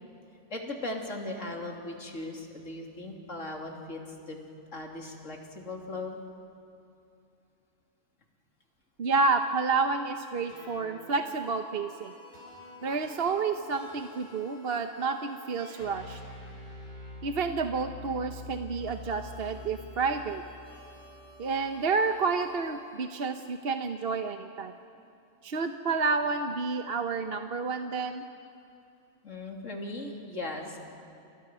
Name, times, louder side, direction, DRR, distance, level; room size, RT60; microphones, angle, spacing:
voice 1, 0.5-4.0 4.3-4.4 4.7-6.2 29.2-30.8, left 2 dB, 70° left, 1 dB, 3.4 m, -38 dB
voice 2, 9.0-12.1 12.8-16.2 17.2-20.4 21.4-24.7 25.4-28.3, right 4 dB, 50° right, 6 dB, 1.1 m, -30 dB
sound 1, 10.5-23.0, left 3 dB, 55° left, 8.4 m, -47 dB
29.5 x 29.0 x 6.2 m, 2.6 s
omnidirectional pair, 1.3 m